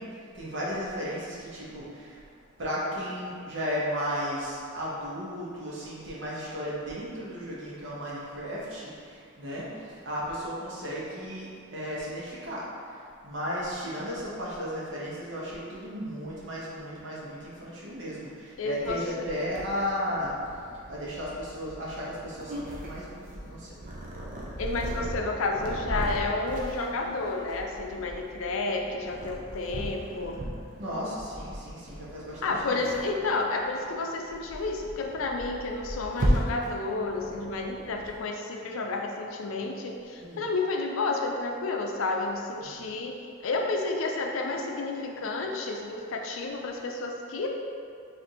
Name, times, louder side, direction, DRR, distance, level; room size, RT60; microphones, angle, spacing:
voice 1, 0.0-2.2 2.6-20.6 20.9-23.8 30.8-32.8 40.2-40.5 42.6-42.9, equal, 60° right, -7 dB, 1.0 m, -35 dB
voice 2, 18.6-19.0 24.6-30.4 32.4-43.1 43.4-47.5, left 3 dB, 85° left, 2 dB, 0.5 m, -31 dB
Purr, 19.5-38.2, equal, 40° right, 0.6 m, -36 dB
5.0 x 2.6 x 2.9 m, 2.3 s
head